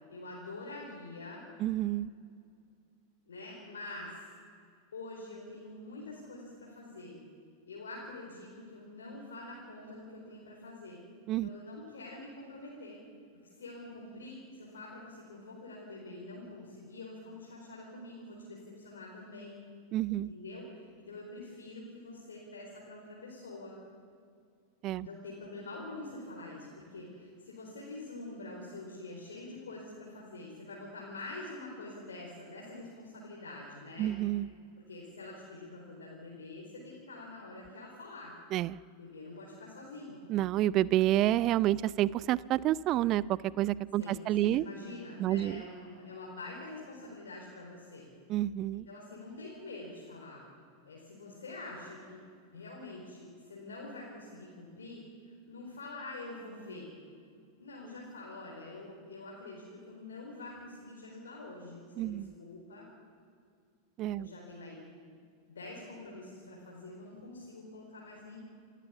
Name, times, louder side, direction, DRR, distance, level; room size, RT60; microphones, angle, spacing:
voice 1, 0.1-1.5 3.3-4.3 4.9-7.2 7.7-11.0 11.4-13.0 13.4-19.6 20.3-23.8 25.0-34.1 34.9-38.3 38.9-40.3 44.0-48.1 48.7-50.4 50.8-52.3 52.5-56.9 57.6-62.9 64.2-64.8 65.5-68.4, left 2 dB, 65° left, -3 dB, 4.5 m, -46 dB
voice 2, 1.6-2.1 11.3-11.5 19.9-20.3 24.8-25.1 34.0-34.5 38.5-38.8 40.3-44.6 45.2-45.6 48.3-48.9 62.0-62.3 64.0-64.3, right 14 dB, 35° right, 21 dB, 0.5 m, -29 dB
28.0 x 15.0 x 7.2 m, 2.3 s
figure-of-eight pair, 90°, 0 cm